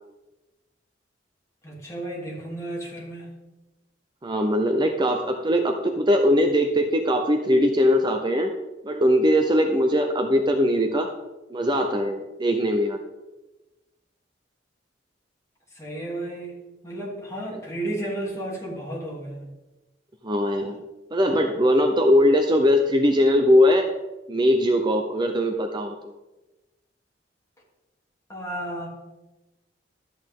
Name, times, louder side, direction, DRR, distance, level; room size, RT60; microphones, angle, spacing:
voice 1, 1.6-3.3 15.7-16.6 16.8-19.5 28.3-28.9, right 1 dB, 15° left, -4 dB, 3.0 m, -33 dB
voice 2, 4.2-8.5 8.8-11.1 11.5-13.0 20.2-20.8 21.1-23.9 24.3-26.0, equal, 25° right, 5 dB, 0.7 m, -20 dB
13.0 x 8.6 x 3.7 m, 1.1 s
head